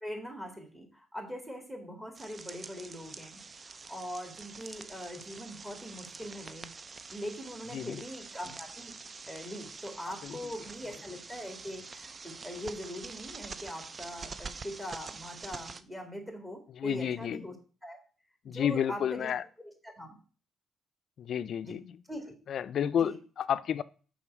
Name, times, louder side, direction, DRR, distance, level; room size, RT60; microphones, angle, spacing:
voice 1, 0.0-6.7 7.1-8.9 9.3-17.5 17.8-18.0 18.4-19.3 19.6-20.2 21.6-21.8 22.1-22.3 22.9-23.2, equal, 10° right, 2 dB, 2.0 m, -42 dB
sound 1, 2.1-15.8, right 4 dB, 35° right, 0.5 m, -46 dB
voice 2, 16.8-17.5 18.5-19.4 21.2-22.0 22.5-23.8, left 9 dB, 65° left, 15 dB, 0.4 m, -31 dB
5.7 x 4.2 x 6.2 m, 0.38 s
cardioid pair, 90°, 0 cm